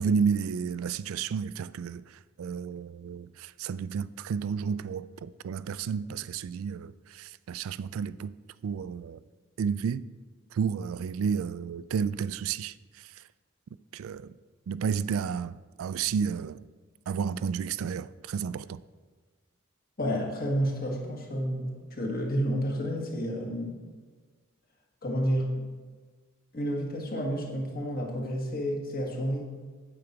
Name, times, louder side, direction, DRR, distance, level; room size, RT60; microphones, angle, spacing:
voice 1, 0.0-8.3 8.6-9.2 9.6-10.1 10.5-13.2 13.9-14.3 14.7-16.6 17.1-18.8, right 6 dB, 85° right, 0.3 m, -31 dB
voice 2, 20.0-23.8 25.0-25.7 26.5-29.5, equal, 45° left, 1.6 m, -30 dB
8.7 x 7.9 x 4.6 m
head